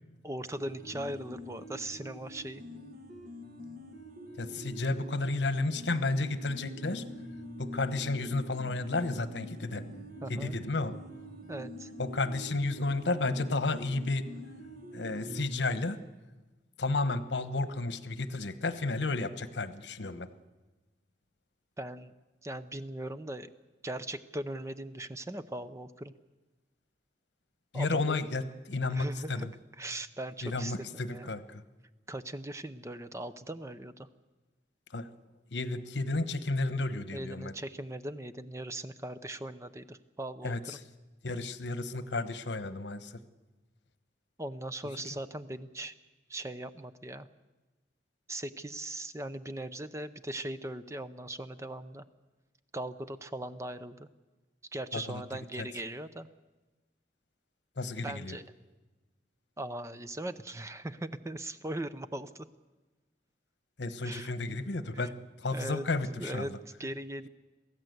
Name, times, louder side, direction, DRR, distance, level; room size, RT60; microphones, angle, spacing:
voice 1, 0.2-2.6 10.2-10.5 11.5-11.9 21.8-22.1 22.4-23.5 23.8-26.1 27.7-28.2 28.9-29.5 29.8-31.3 32.1-34.1 37.1-40.8 44.4-45.9 46.3-47.3 48.3-52.0 52.7-54.1 54.7-56.3 58.0-58.4 59.6-62.5 64.0-64.4 64.9-65.1 65.5-65.8 66.2-66.5 66.8-67.3, right 1 dB, 15° right, 12 dB, 0.6 m, -39 dB
sound 1, 0.5-15.5, equal, 55° right, 2.1 m, -45 dB
voice 2, 4.4-7.1 7.6-9.8 10.3-11.0 12.0-14.3 14.9-16.0 16.8-20.3 27.7-29.5 30.4-31.6 34.9-35.1 35.5-37.5 40.4-40.8 41.2-43.2 54.9-55.2 55.6-55.7 57.8-58.4 63.8-66.6, left 2 dB, 80° left, 12 dB, 1.1 m, -32 dB
23.0 x 15.0 x 8.0 m, 1.2 s
head